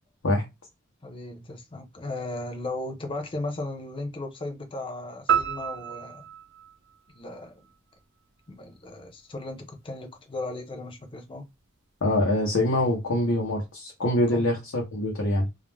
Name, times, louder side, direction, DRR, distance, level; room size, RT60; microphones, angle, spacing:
voice 1, 1.0-6.3 7.2-7.6 8.5-11.4 14.3-14.5, left 2 dB, 25° left, 0.5 m, -36 dB
sound 1, 5.3-7.7, right 8 dB, 60° right, 0.6 m, -29 dB
voice 2, 12.0-15.5, left 1 dB, 75° left, 0.7 m, -24 dB
2.4 x 2.0 x 3.2 m
head